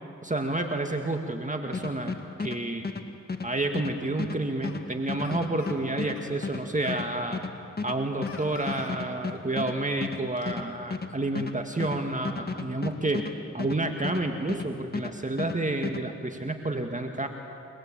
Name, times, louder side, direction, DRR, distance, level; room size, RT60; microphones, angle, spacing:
voice 1, 0.2-2.8 3.4-7.4 7.8-13.2 13.5-17.3, right 2 dB, 25° right, 4 dB, 2.0 m, -30 dB
sound 1, 1.7-14.7 14.9-16.0, left 4 dB, 35° left, 1.9 m, -34 dB
sound 2, 4.6-4.8 5.2-6.2 6.8-7.1 8.3-8.9 9.3-9.4 10.1-10.6, left 4 dB, 55° left, 4.5 m, -46 dB
30.0 x 20.0 x 8.9 m, 2.7 s
cardioid pair, 50°, 29 cm